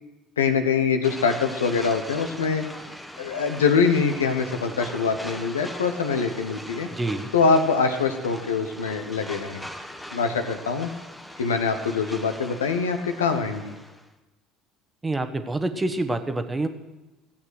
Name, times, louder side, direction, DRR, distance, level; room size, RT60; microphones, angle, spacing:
voice 1, 0.4-2.6 3.2-6.9 7.3-9.6 10.1-10.9 11.4-13.7, left 5 dB, 80° left, 7 dB, 1.0 m, -24 dB
sound 1, 1.0-14.1, equal, 5° left, 1.3 m, -40 dB
voice 2, 6.9-7.3 15.0-16.7, right 2 dB, 15° right, 9 dB, 1.2 m, -27 dB
15.5 x 8.6 x 6.4 m, 1.1 s
figure-of-eight pair, 60°, 0 cm